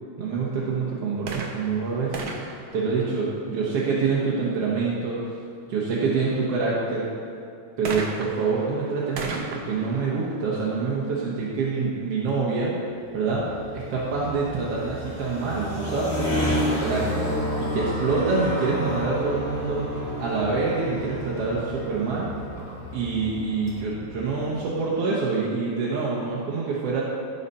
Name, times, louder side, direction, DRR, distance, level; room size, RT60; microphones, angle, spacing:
voice 1, 0.2-2.4 2.7-5.2 5.7-7.1 7.8-12.7 13.1-13.5 13.7-17.3 17.6-19.9 20.2-22.3 22.9-27.0, right 4 dB, 60° right, -5 dB, 1.9 m, -26 dB
sound 1, 1.2-3.8 7.8-11.5 12.3-12.4, right 4 dB, 75° right, 1.1 m, -37 dB
sound 2, 13.0-24.6, equal, 30° left, 2.2 m, -31 dB
16.0 x 5.5 x 4.2 m, 2.5 s
omnidirectional pair, 3.5 m